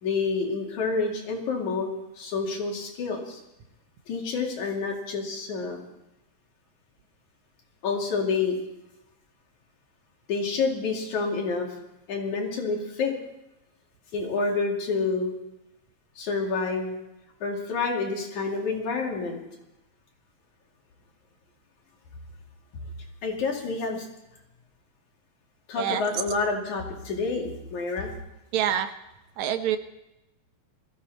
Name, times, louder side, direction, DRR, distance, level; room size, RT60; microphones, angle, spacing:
voice 1, 0.0-1.9 2.2-3.4 4.1-5.8 7.8-8.6 10.3-11.7 12.1-13.1 14.1-15.3 16.2-16.9 17.4-19.4 23.2-24.1 25.7-28.1, left 4 dB, 80° left, 0 dB, 4.0 m, -28 dB
voice 2, 28.5-28.9 29.4-29.8, right 10 dB, 75° right, 8 dB, 2.3 m, -26 dB
21.0 x 14.5 x 4.2 m, 0.92 s
omnidirectional pair, 3.3 m